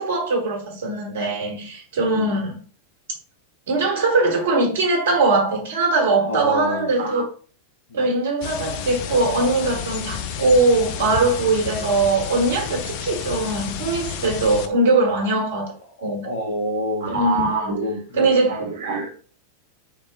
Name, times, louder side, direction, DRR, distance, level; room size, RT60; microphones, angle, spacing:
voice 1, 0.0-2.6 3.7-7.2 7.9-15.7 16.0-16.2 17.0-17.8 18.2-19.2, right 3 dB, 60° right, 1.3 m, -21 dB
voice 2, 2.0-2.3 6.2-6.9 7.9-8.2 12.8-12.9 16.0-17.1 17.6-18.3, equal, 70° left, 0.8 m, -28 dB
sound 1, 8.4-14.7, left 8 dB, 45° left, 0.4 m, -31 dB
4.0 x 2.3 x 3.5 m
figure-of-eight pair, 90°, 0 cm